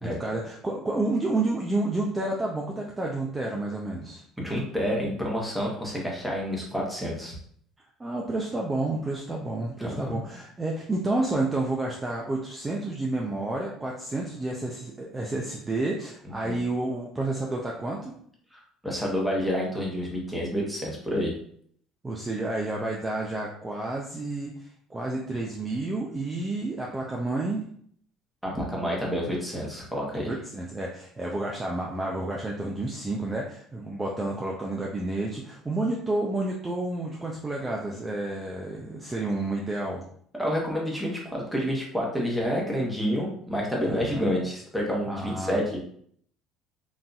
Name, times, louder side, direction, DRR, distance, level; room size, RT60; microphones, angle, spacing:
voice 1, 0.0-4.2 8.0-18.1 22.0-24.5 24.9-27.6 30.3-40.0 43.8-44.3 45.1-45.6, right 2 dB, 15° right, -2 dB, 0.4 m, -30 dB
voice 2, 4.4-7.3 9.8-10.2 16.4-16.6 18.5-21.3 28.4-30.3 40.4-45.8, equal, ahead, -3 dB, 1.0 m, -29 dB
3.9 x 2.6 x 2.3 m, 0.62 s
cardioid pair, 130°, 0 cm